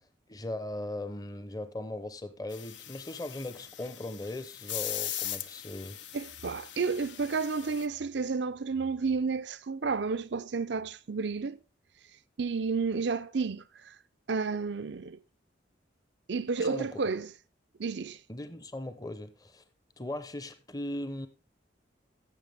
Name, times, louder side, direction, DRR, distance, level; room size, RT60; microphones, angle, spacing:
voice 1, 0.3-6.0 16.6-17.0 18.3-19.6 20.0-21.3, left 1 dB, 20° left, 0.8 m, -38 dB
sound 1, 2.5-7.9, left 11 dB, 75° left, 0.9 m, -40 dB
voice 2, 6.1-11.6 12.4-13.9 14.3-15.2 16.3-17.3 17.8-18.2, right 4 dB, 70° right, 0.6 m, -31 dB
14.5 x 7.3 x 3.5 m
head